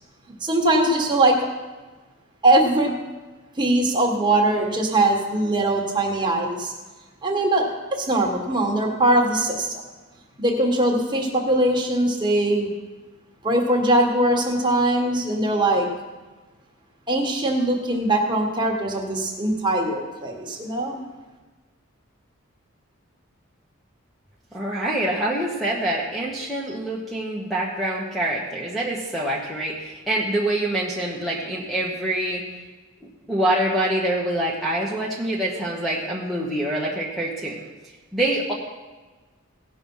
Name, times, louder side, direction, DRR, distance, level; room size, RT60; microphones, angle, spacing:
voice 1, 0.4-1.4 2.4-2.9 3.6-6.7 7.2-9.8 10.4-12.7 13.4-15.9 17.1-21.0, right 1 dB, 20° right, 0 dB, 1.5 m, -21 dB
voice 2, 24.5-32.4 33.3-37.6 38.1-38.5, right 1 dB, ahead, -6 dB, 1.1 m, -25 dB
17.0 x 5.9 x 5.6 m, 1.3 s
head